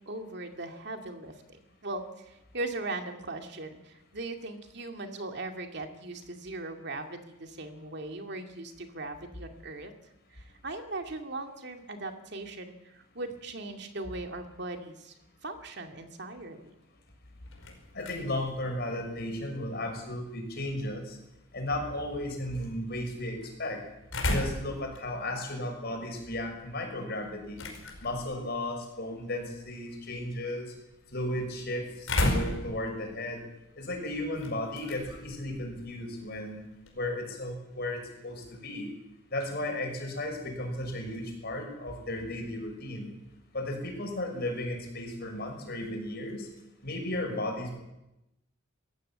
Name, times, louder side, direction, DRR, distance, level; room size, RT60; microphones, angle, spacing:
voice 1, 0.1-9.9 10.3-15.1 15.4-16.7, right 2 dB, 55° right, 5 dB, 2.2 m, -39 dB
sound 1, 17.2-37.1, left 1 dB, 80° left, 5.2 m, -38 dB
voice 2, 17.9-21.2 21.5-23.8 24.3-27.6 28.0-30.7 31.1-33.4 33.8-36.6 36.9-38.9 39.3-43.1 43.5-46.5 46.8-47.8, left 1 dB, 50° left, 2 dB, 6.2 m, -35 dB
21.0 x 15.0 x 8.7 m, 0.91 s
head